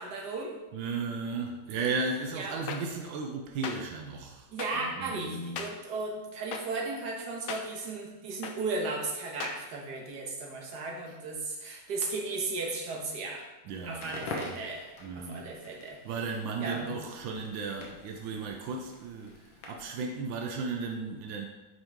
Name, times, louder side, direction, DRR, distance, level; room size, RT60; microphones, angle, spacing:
voice 1, 0.0-0.6 2.4-2.6 4.5-13.5 13.8-16.0 16.6-16.9, right 3 dB, 60° right, -1 dB, 1.7 m, -35 dB
voice 2, 0.7-4.5 4.7-5.7 13.6-14.2 14.4-14.6 15.0-15.5 16.0-21.5, right 4 dB, 90° right, 2 dB, 1.5 m, -35 dB
sound 1, 2.7-2.8 3.6-3.8 4.6-4.7 5.6-5.7 6.5-6.6 7.5-7.6 8.4-8.5 9.4-9.5, left 6 dB, 65° left, 0.8 m, -36 dB
Crackle, 13.9-20.0, left 3 dB, 90° left, 1.8 m, -45 dB
9.0 x 4.5 x 3.6 m, 1.1 s
omnidirectional pair, 2.0 m